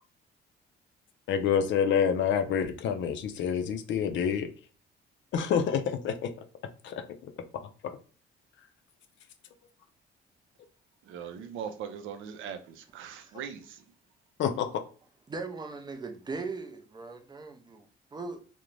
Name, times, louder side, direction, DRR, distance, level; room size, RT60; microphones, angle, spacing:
voice 1, 1.3-4.5 5.3-6.3 6.8-7.0 7.8-7.9 14.4-14.7, left 7 dB, 70° left, 0.4 m, -27 dB
voice 2, 11.1-13.8, right 8 dB, 80° right, 0.4 m, -40 dB
voice 3, 15.3-18.4, right 4 dB, 20° right, 0.4 m, -39 dB
2.5 x 2.1 x 3.0 m
cardioid pair, 90°, 20 cm